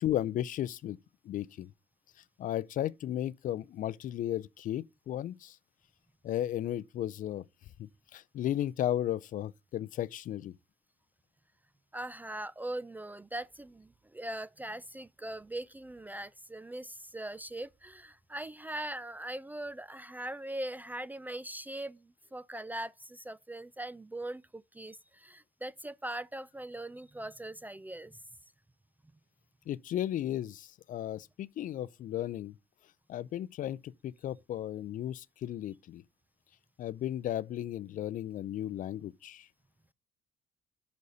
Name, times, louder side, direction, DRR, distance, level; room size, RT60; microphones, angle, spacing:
voice 1, 0.0-1.0 1.2-1.7 2.4-5.6 6.2-7.4 7.8-10.5 29.7-32.5 33.1-36.0 36.8-39.5, left 12 dB, 55° left, 0.4 m, -35 dB
voice 2, 11.9-28.2, right 1 dB, 10° right, 0.3 m, -41 dB
6.5 x 4.0 x 5.4 m
cardioid pair, 110°, 17 cm